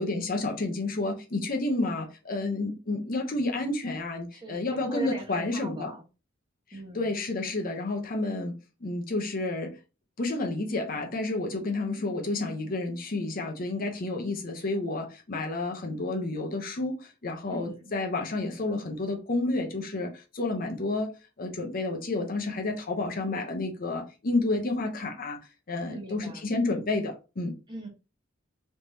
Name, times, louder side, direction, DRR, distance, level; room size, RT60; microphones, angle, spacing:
voice 1, 0.0-5.9 6.9-8.5 8.8-9.8 10.2-21.1 21.4-25.4 25.7-27.6, left 2 dB, 45° left, 0.8 m, -30 dB
voice 2, 4.3-6.0 6.7-7.2 17.5-17.9 25.8-26.5 27.7-27.9, right 1 dB, 25° right, 1.1 m, -40 dB
3.3 x 3.2 x 2.7 m
head